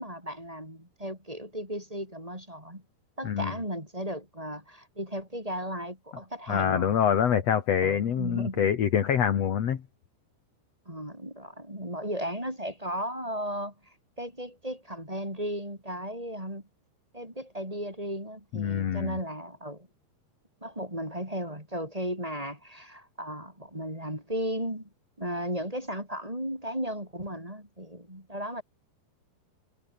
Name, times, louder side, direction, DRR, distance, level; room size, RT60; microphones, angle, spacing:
voice 1, 0.0-2.8 3.2-7.0 7.8-8.7 10.9-16.6 17.1-19.9 20.6-24.9 25.2-28.6, equal, 5° right, 7.0 m, -35 dB
voice 2, 6.5-9.8 18.5-19.1, left 8 dB, 50° left, 2.1 m, -25 dB
omnidirectional pair, 5.1 m